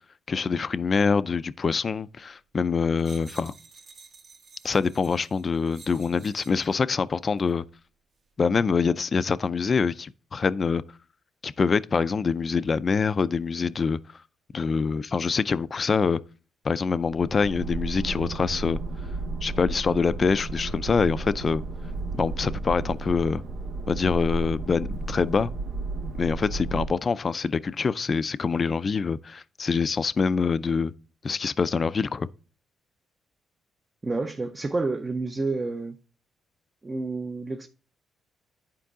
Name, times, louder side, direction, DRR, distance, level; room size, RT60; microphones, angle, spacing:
voice 1, 0.3-3.5 4.6-7.6 8.4-10.8 11.4-14.0 14.5-16.2 16.6-18.8 19.4-21.6 22.2-23.4 23.9-25.5 26.1-30.9 31.2-32.3, left 5 dB, 40° left, 0.4 m, -25 dB
sound 1, 3.0-6.7 7.4-7.6, right 5 dB, 60° right, 1.6 m, -51 dB
sound 2, 17.0-26.9, right 3 dB, 85° right, 0.9 m, -33 dB
voice 2, 34.0-36.0 36.8-37.7, right 3 dB, 25° right, 0.6 m, -29 dB
10.5 x 4.6 x 3.6 m
cardioid pair, 90°, 0 cm